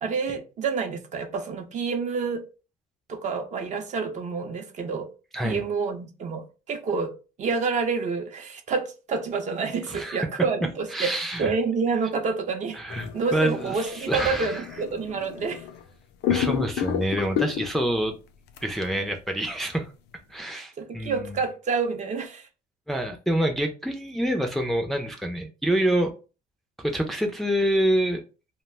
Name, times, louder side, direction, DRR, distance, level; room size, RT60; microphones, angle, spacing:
voice 1, 0.0-2.4 3.1-5.1 5.4-7.1 7.4-12.8 13.1-15.6 20.5-22.5, right 5 dB, 45° right, 0.6 m, -28 dB
voice 2, 9.9-10.3 10.9-11.5 12.7-14.6 16.3-18.2 18.6-19.9 20.3-21.4 22.9-26.1 26.8-28.2, right 1 dB, ahead, 0.4 m, -26 dB
sound 1, 12.9-15.9 16.2-18.0 18.6-18.7, left 9 dB, 80° left, 0.4 m, -30 dB
2.3 x 2.1 x 3.3 m
cardioid pair, 110°, 17 cm